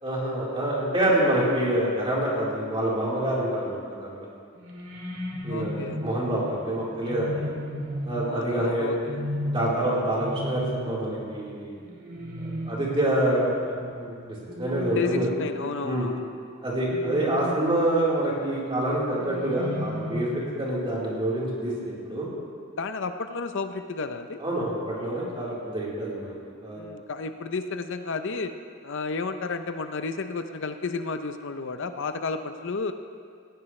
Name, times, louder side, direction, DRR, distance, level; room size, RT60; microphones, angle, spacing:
voice 1, 0.0-4.1 5.4-7.5 8.0-8.9 9.4-11.7 12.4-15.3 15.8-16.1 16.6-22.3 24.4-26.3 26.6-26.8, right 1 dB, 25° right, -7 dB, 4.1 m, -27 dB
sound 1, 4.5-16.1 16.9-18.2 19.2-20.8, equal, 65° right, 2.3 m, -35 dB
voice 2, 5.5-6.0 8.3-9.2 14.9-16.2 22.8-24.4 26.8-28.5 28.8-32.9, left 4 dB, 65° left, 8 dB, 0.7 m, -32 dB
18.5 x 15.5 x 3.3 m, 2.2 s
head